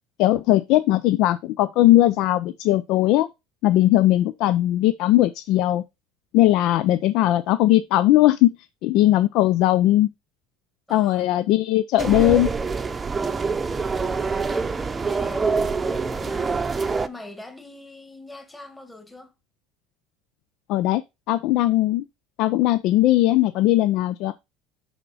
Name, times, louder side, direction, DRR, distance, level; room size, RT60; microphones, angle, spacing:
voice 1, 0.2-3.3 3.6-5.8 6.3-8.6 8.8-10.1 10.9-12.5 20.7-21.0 21.3-22.0 22.4-24.3, left 15 dB, 65° left, 0.5 m, -19 dB
voice 2, 10.9-11.3 14.5-16.6 17.1-19.3, left 2 dB, 10° left, 1.7 m, -42 dB
sound 1, 12.0-17.1, right 4 dB, 20° right, 0.7 m, -25 dB
11.0 x 4.3 x 4.2 m
supercardioid pair, 115°, 0 cm